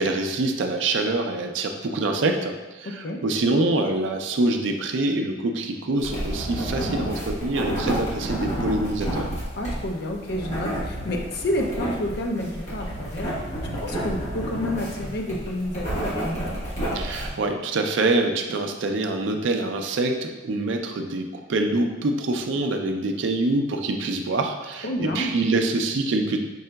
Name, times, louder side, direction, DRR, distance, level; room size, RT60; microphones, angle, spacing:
voice 1, 0.0-9.3 16.9-26.4, right 2 dB, 65° right, 4 dB, 0.4 m, -25 dB
sound 1, 6.0-17.3, right 1 dB, 35° left, 1.3 m, -30 dB
voice 2, 9.6-13.3 13.6-16.4 24.8-25.3, left 1 dB, 55° left, 2 dB, 0.5 m, -29 dB
5.4 x 3.7 x 2.2 m, 1.2 s
head